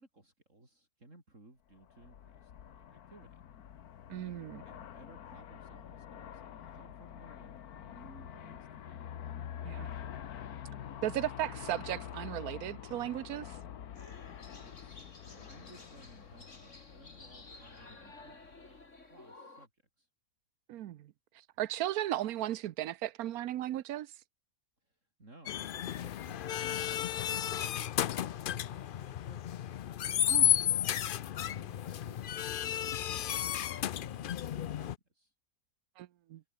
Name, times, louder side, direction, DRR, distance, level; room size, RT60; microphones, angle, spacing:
voice 1, 0.0-3.3 4.6-9.0 14.6-20.1 24.8-28.1 28.4-29.7 30.6-35.3, right 2 dB, 55° right, 6.4 m, -59 dB
Aircraft, 1.8-19.0, left 9 dB, 90° left, 1.6 m, -47 dB
voice 2, 4.1-4.6 9.6-9.9 11.0-13.6 20.7-21.1 21.6-24.1 30.3-30.5 36.0-36.4, right 13 dB, 80° right, 1.2 m, -36 dB
sound 1, 13.9-19.7, left 2 dB, 55° left, 4.6 m, -54 dB
sound 2, 25.5-34.9, left 10 dB, 75° left, 0.4 m, -33 dB
omnidirectional pair, 1.5 m